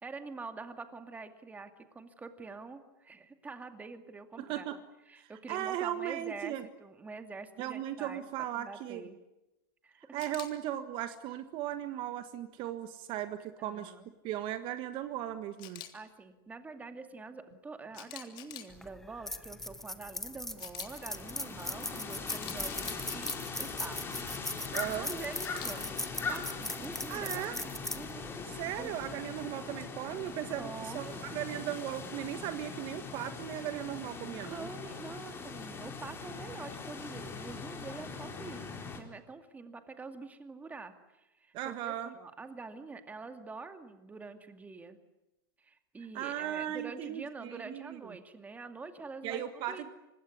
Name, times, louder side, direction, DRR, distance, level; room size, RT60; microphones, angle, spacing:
voice 1, 0.0-6.5 6.8-8.2 8.5-9.2 9.8-10.2 13.6-14.1 15.9-23.3 23.6-24.0 24.7-28.3 28.8-29.0 30.5-31.2 34.4-45.0 45.6-49.8, right 4 dB, 15° right, 8 dB, 2.4 m, -46 dB
voice 2, 4.4-4.8 5.2-6.6 7.6-9.0 10.1-13.9 14.2-15.8 24.7-25.1 27.1-27.6 28.5-34.7 41.5-42.1 46.1-48.1 49.2-49.9, right 12 dB, 45° right, 10 dB, 1.6 m, -37 dB
Camera, 10.2-10.5 15.6-15.9 17.9-18.7 20.6-20.9 22.3-23.4 25.4-25.7, left 13 dB, 45° left, 3.3 m, -45 dB
sound 1, 18.7-29.2, left 1 dB, 5° left, 1.3 m, -40 dB
sound 2, 20.9-39.0, left 4 dB, 20° left, 4.3 m, -41 dB
25.5 x 20.0 x 9.6 m, 0.96 s
supercardioid pair, 130°, 12 cm